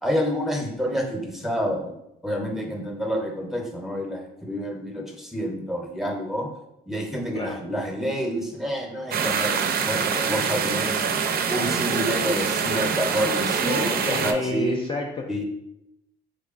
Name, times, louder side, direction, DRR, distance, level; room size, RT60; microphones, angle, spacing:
voice 1, 0.0-1.9 2.2-6.5 6.9-9.6 9.8-11.2 11.5-14.8 15.3-15.4, equal, ahead, 0 dB, 0.7 m, -28 dB
sound 1, 9.1-14.3, right 6 dB, 50° right, 0.4 m, -25 dB
voice 2, 13.6-15.3, left 3 dB, 25° left, 0 dB, 0.3 m, -30 dB
3.8 x 3.2 x 2.4 m, 0.86 s
cardioid pair, 90°, 20 cm